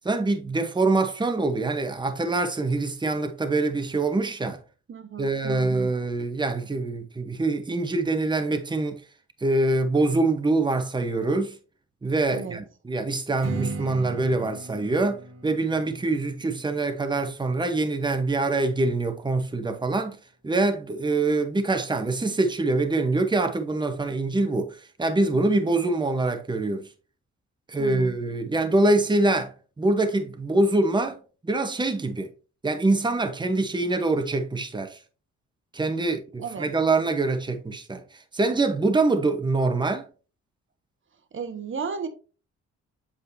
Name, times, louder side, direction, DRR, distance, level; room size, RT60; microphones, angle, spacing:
voice 1, 0.0-4.6 5.2-9.0 9.4-11.6 12.0-20.2 20.4-26.9 27.7-31.2 31.4-32.3 32.6-35.0 35.7-38.0 38.3-40.0, right 2 dB, 15° right, 1.0 m, -24 dB
voice 2, 4.9-5.9 12.3-12.6 27.8-28.2 36.4-36.7 41.3-42.1, right 5 dB, 40° right, 1.2 m, -34 dB
Strum, 13.4-18.6, right 3 dB, 55° right, 1.6 m, -38 dB
7.7 x 5.0 x 2.7 m
cardioid pair, 90°, 30 cm